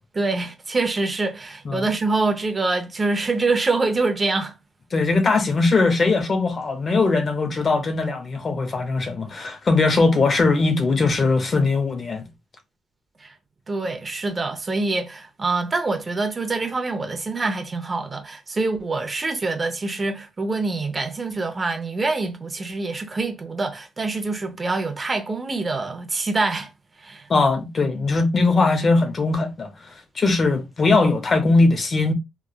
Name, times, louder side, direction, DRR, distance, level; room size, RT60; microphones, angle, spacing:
voice 1, 0.1-4.5 13.2-13.3 13.7-26.7 27.0-27.3, right 3 dB, 30° right, 0.6 m, -25 dB
voice 2, 4.9-12.3 27.3-32.1, left 3 dB, 40° left, 0.6 m, -20 dB
3.2 x 2.2 x 2.3 m
cardioid pair, 90°, 0 cm